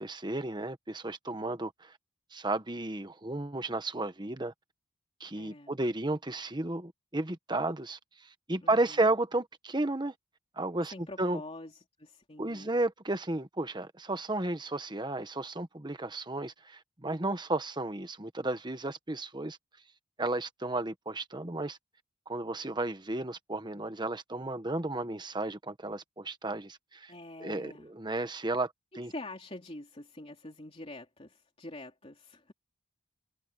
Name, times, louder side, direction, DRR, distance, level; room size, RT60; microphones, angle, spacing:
voice 1, 0.0-1.9 2.3-4.5 5.2-10.1 10.6-11.4 12.4-19.6 20.2-21.8 22.3-27.1 27.4-29.1, right 2 dB, 25° right, 1.2 m, -33 dB
voice 2, 5.3-5.8 8.6-9.0 10.9-12.7 27.1-27.9 29.1-32.5, left 2 dB, 30° left, 3.3 m, -46 dB
head